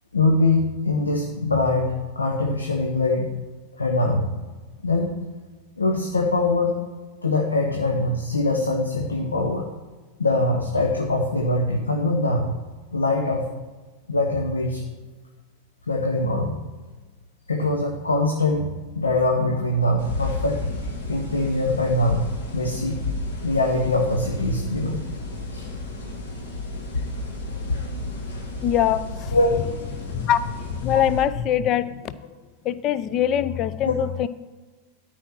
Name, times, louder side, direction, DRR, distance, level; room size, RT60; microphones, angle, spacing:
voice 1, 0.1-3.3 3.8-4.3 4.8-5.1 5.8-6.8 7.2-9.7 10.2-12.5 12.9-13.5 14.1-14.8 15.9-16.6 17.5-20.6 21.0-23.0 23.4-25.0 25.5-25.7 29.3-29.5 33.8-34.0, left 2 dB, 75° left, 2 dB, 1.1 m, -23 dB
sound 1, 20.0-31.2, left 2 dB, 60° left, 2.0 m, -32 dB
voice 2, 28.6-29.0 30.0-30.4 30.8-31.9 32.7-34.3, left 10 dB, 35° left, 15 dB, 0.5 m, -22 dB
12.5 x 4.9 x 6.0 m, 1.3 s
figure-of-eight pair, 90°, 0 cm